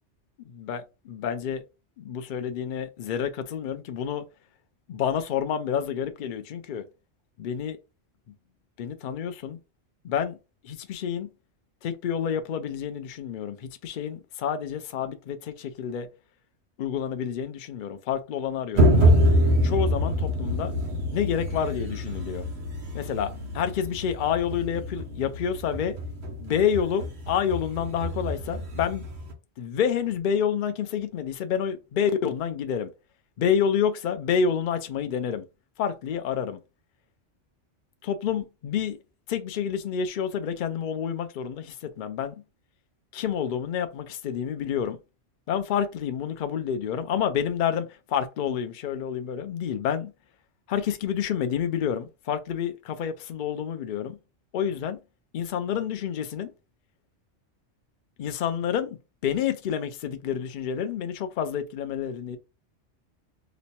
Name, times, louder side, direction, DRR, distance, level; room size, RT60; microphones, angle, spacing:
voice 1, 0.6-1.6 2.0-4.2 4.9-6.9 7.4-7.8 8.8-9.6 10.0-10.4 10.6-11.3 11.8-16.1 16.8-19.2 19.6-20.7 21.1-22.4 22.9-26.0 26.4-29.0 29.6-32.9 33.4-35.5 35.8-36.6 38.0-39.0 39.3-42.3 43.1-45.0 45.5-50.1 50.7-54.2 54.5-55.0 55.3-56.5 58.2-59.0 59.2-62.4, left 8 dB, 55° left, 0.6 m, -28 dB
sound 1, 18.7-29.3, equal, 60° right, 1.1 m, -26 dB
3.0 x 2.1 x 4.1 m
omnidirectional pair, 1.2 m